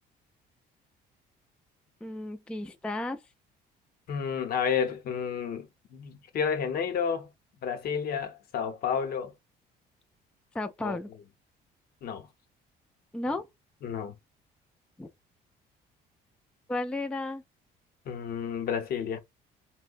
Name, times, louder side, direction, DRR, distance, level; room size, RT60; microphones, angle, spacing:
voice 1, 2.0-3.2 10.5-11.1 13.1-13.4 15.0-15.1 16.7-17.4, left 2 dB, 5° left, 0.4 m, -33 dB
voice 2, 4.1-7.3 7.6-9.3 10.8-11.0 12.0-12.3 13.8-14.1 18.0-19.2, left 7 dB, 65° left, 0.9 m, -31 dB
4.4 x 2.2 x 2.5 m
cardioid pair, 110°, 17 cm